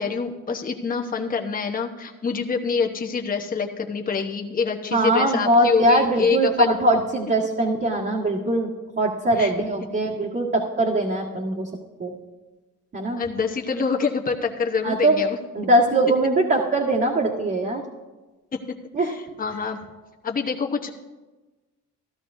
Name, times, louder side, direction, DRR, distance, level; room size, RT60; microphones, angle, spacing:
voice 1, 0.0-6.8 9.4-9.5 13.2-15.4 18.5-18.6 19.0-19.8 20.2-20.9, left 5 dB, 30° left, 2 dB, 1.0 m, -26 dB
voice 2, 4.9-11.7 12.0-12.1 12.9-13.2 14.8-15.2 15.5-17.8 18.9-19.2, right 1 dB, 35° right, -4 dB, 1.7 m, -21 dB
15.0 x 12.5 x 2.7 m, 1.2 s
cardioid pair, 90°, 30 cm